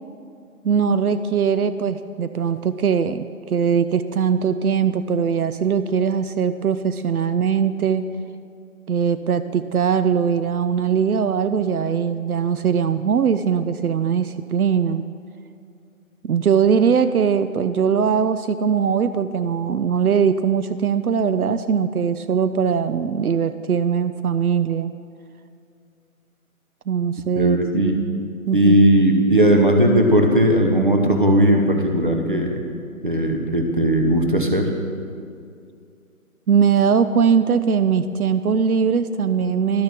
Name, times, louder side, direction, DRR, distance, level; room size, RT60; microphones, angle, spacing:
voice 1, 0.6-8.0 8.9-15.0 16.2-24.9 26.9-27.6 28.5-28.8 36.5-39.8, right 7 dB, 80° right, 11 dB, 0.5 m, -20 dB
voice 2, 27.4-28.0 28.5-32.6 33.0-34.7, right 1 dB, 35° right, 3 dB, 0.8 m, -17 dB
12.0 x 6.6 x 5.9 m, 2.4 s
figure-of-eight pair, 180°, 43 cm